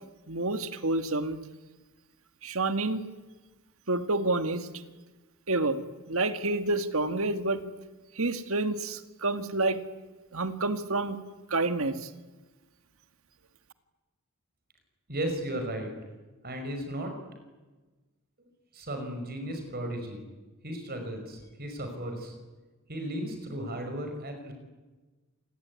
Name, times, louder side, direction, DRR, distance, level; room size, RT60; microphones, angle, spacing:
voice 1, 0.3-1.4 2.4-3.0 3.9-4.7 5.5-5.8 6.1-7.6 8.2-9.8 10.3-11.2 11.5-12.1, right 2 dB, 65° right, 9 dB, 2.0 m, -28 dB
voice 2, 15.1-15.9 16.4-17.1 18.4-18.5 18.7-20.2 20.6-22.3 22.9-24.5, right 1 dB, 45° right, 5 dB, 5.4 m, -35 dB
27.5 x 21.0 x 9.7 m, 1.2 s
head